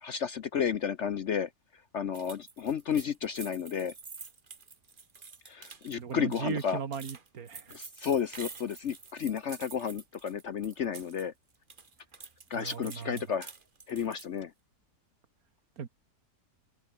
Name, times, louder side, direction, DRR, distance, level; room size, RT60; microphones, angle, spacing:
voice 1, 0.0-3.9 5.5-6.8 7.7-11.3 12.5-13.5 13.9-14.5, left 7 dB, 55° left, 0.9 m, -32 dB
sound 1, 2.1-11.3 11.5-14.4, right 4 dB, 30° right, 1.6 m, -48 dB
voice 2, 6.0-7.8 12.5-13.2 15.8-15.9, right 6 dB, 60° right, 2.0 m, -37 dB
omnidirectional pair, 1.8 m